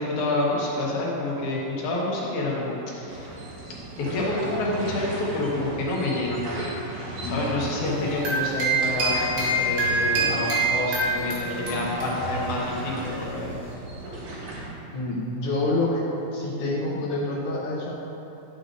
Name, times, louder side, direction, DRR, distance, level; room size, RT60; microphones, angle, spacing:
voice 1, 0.0-3.3 4.0-6.4 7.3-13.6, left 2 dB, 70° left, -4 dB, 2.6 m, -28 dB
sound 1, 3.1-14.7, right 1 dB, 70° right, 3.1 m, -36 dB
sound 2, 7.8-12.7, right 2 dB, 90° right, 3.0 m, -26 dB
voice 2, 14.9-16.0 16.3-17.9, left 2 dB, 85° left, -5 dB, 1.2 m, -27 dB
10.5 x 6.6 x 2.6 m, 2.9 s
omnidirectional pair, 3.7 m